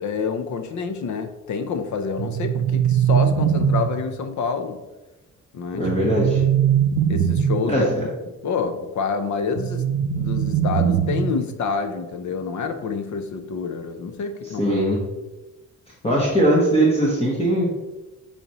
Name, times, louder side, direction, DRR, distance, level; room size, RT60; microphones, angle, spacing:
voice 1, 0.0-4.8 5.5-5.9 7.1-7.9 8.4-9.8 10.2-14.8, left 5 dB, 65° left, 8 dB, 0.7 m, -27 dB
sound 1, 2.2-4.2 5.9-7.8 9.6-11.5, right 8 dB, 85° right, 0.5 m, -21 dB
voice 2, 5.8-6.4 7.7-8.1 14.6-15.0 16.0-17.7, right 1 dB, 20° left, -5 dB, 1.2 m, -20 dB
8.1 x 4.3 x 3.0 m, 1.1 s
wide cardioid pair, 160°, 32 cm